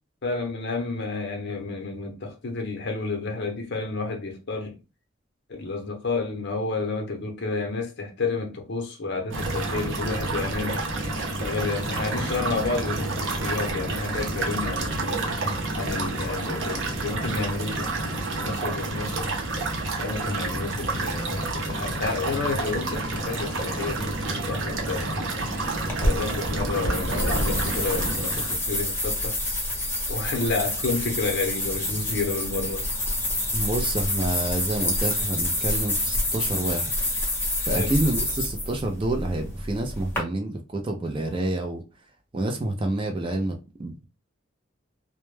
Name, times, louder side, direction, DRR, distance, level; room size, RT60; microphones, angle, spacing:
voice 1, 0.2-4.8 5.5-10.9 11.4-15.2 15.7-19.3 20.0-24.2 24.5-25.1 26.0-29.4 30.1-32.9 37.7-37.9, left 3 dB, 55° left, 0.7 m, -30 dB
sound 1, 9.3-28.6, right 2 dB, 65° right, 0.7 m, -28 dB
sound 2, 25.9-40.2, left 1 dB, 10° left, 0.7 m, -28 dB
voice 2, 33.5-36.9 37.6-41.8 42.3-44.1, right 2 dB, 25° right, 0.4 m, -28 dB
2.1 x 2.1 x 3.1 m
head